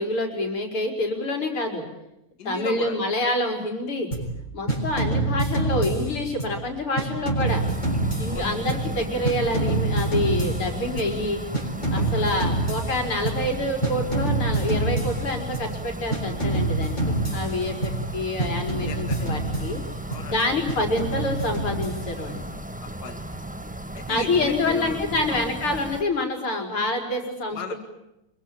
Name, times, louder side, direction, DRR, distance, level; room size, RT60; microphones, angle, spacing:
voice 1, 0.0-1.8 2.5-4.1 4.5-7.6 8.2-11.4 11.9-19.8 20.3-22.4 24.1-27.6, left 1 dB, 85° left, 3 dB, 5.7 m, -27 dB
voice 2, 2.4-3.0 8.3-8.7 11.9-12.3 17.9-18.2 18.8-19.3 20.1-20.4 22.8-23.4 23.9-25.0 25.3-25.5 27.5-27.8, left 4 dB, 50° left, 6 dB, 2.6 m, -37 dB
sound 1, 4.1-4.4 4.7-6.6 7.0-9.0 9.2-11.2 11.5-13.5 13.8-15.8 16.1-18.1 18.4-20.3 20.7-22.3, right 2 dB, 20° left, 6.8 m, -27 dB
sound 2, 7.4-26.0, right 1 dB, 5° right, 1.0 m, -36 dB
26.0 x 23.5 x 8.8 m, 0.89 s
omnidirectional pair, 2.3 m